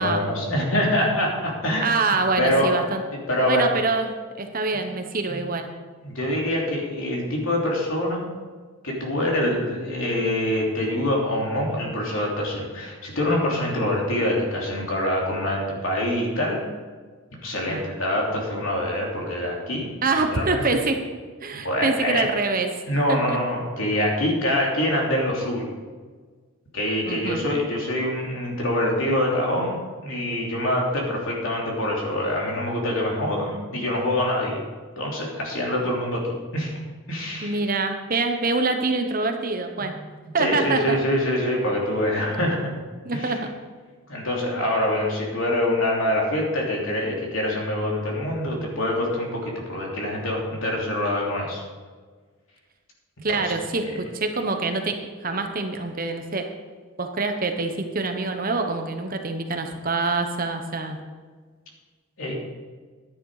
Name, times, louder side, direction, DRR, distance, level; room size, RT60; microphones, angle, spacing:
voice 1, 0.0-1.9 2.4-2.8 3.1-3.7 5.3-5.4 6.0-8.2 8.8-16.6 17.4-19.9 20.2-20.6 21.5-22.3 22.9-25.7 26.7-29.8 30.0-34.6 35.0-36.8 37.1-37.6 39.8-39.9 40.4-42.7 43.1-43.4 44.1-51.6 53.3-53.5 62.2-62.4, left 1 dB, 65° left, -2 dB, 3.1 m, -25 dB
voice 2, 1.8-3.0 3.5-4.1 4.4-5.7 17.7-17.8 20.0-21.0 21.4-22.8 23.1-23.4 27.1-27.4 37.4-39.9 40.3-41.0 43.0-43.5 53.2-56.5 57.0-61.0, right 3 dB, 40° right, 5 dB, 1.0 m, -25 dB
11.0 x 10.0 x 4.9 m, 1.5 s
head